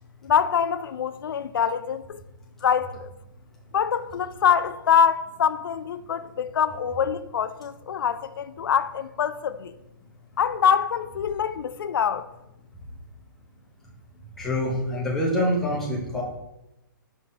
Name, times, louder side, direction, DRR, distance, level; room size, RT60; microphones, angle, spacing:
voice 1, 0.2-2.2 2.6-3.1 3.7-9.7 10.4-12.3, left 7 dB, 85° left, 0.4 m, -24 dB
voice 2, 14.4-16.2, left 1 dB, 5° left, 1.2 m, -25 dB
5.7 x 5.2 x 4.1 m
hypercardioid pair, 165°, 11 cm